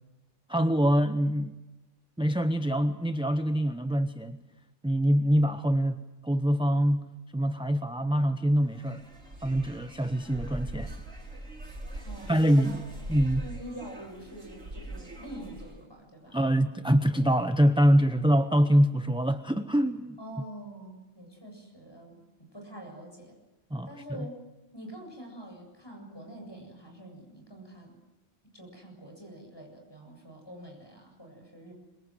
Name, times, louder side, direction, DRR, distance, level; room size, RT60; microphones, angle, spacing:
voice 1, 0.5-1.5 2.2-4.4 4.8-7.1 7.3-9.0 9.4-10.9 12.3-12.8 13.1-13.5 16.3-20.2 23.7-23.9 24.2-24.3, equal, 5° right, 9 dB, 0.6 m, -24 dB
sound 1, 8.6-15.8, right 1 dB, 85° right, 4.7 m, -42 dB
voice 2, 12.0-13.2 13.4-16.4 20.2-23.4 23.9-24.4 24.7-28.0 28.5-31.7, right 1 dB, 20° left, 2 dB, 7.7 m, -45 dB
26.5 x 24.5 x 7.6 m, 1.0 s
omnidirectional pair, 1.3 m